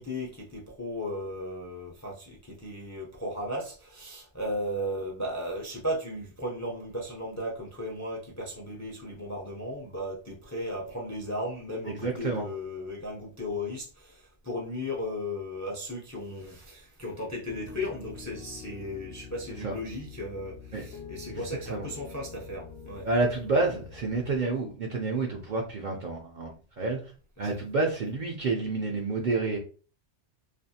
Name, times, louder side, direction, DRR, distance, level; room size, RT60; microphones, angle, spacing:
voice 1, 0.0-23.1 27.4-27.5, left 1 dB, 30° left, 0.3 m, -36 dB
voice 2, 12.0-12.5 19.6-19.7 20.7-20.9 21.3-21.4 21.7-21.9 23.0-27.1 27.4-29.6, right 3 dB, 60° right, 0.5 m, -29 dB
Piano, 17.5-24.4, left 6 dB, 75° left, 0.8 m, -45 dB
2.5 x 2.3 x 2.6 m
omnidirectional pair, 1.2 m